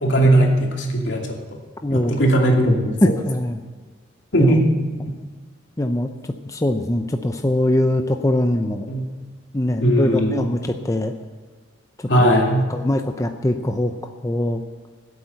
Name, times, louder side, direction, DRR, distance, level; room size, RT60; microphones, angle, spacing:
voice 1, 0.0-1.4 1.9-3.1 4.3-4.9 8.9-9.1 9.8-10.5 12.1-12.7, right 1 dB, 70° left, 0 dB, 2.6 m, -18 dB
voice 2, 1.8-2.3 3.0-3.6 4.4-4.5 5.8-6.1 6.5-8.9 9.5-11.1 12.0-12.1 12.7-13.9 14.2-14.6, left 1 dB, 15° left, 6 dB, 0.6 m, -22 dB
16.0 x 8.6 x 8.0 m, 1.4 s
head